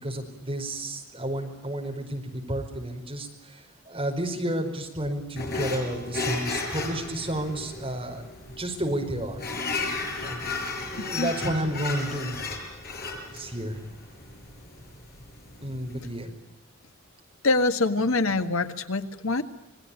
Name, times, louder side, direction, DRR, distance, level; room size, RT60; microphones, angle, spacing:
voice 1, 0.0-8.2 8.6-9.4 10.2-10.5 10.9-12.5 13.3-13.8 15.6-16.3, right 1 dB, 25° right, 2 dB, 5.0 m, -31 dB
sound 1, 5.4-16.2, left 3 dB, 45° left, 5.9 m, -34 dB
voice 2, 17.4-19.4, left 3 dB, 75° left, 8 dB, 1.7 m, -24 dB
27.5 x 20.5 x 8.7 m, 0.96 s
head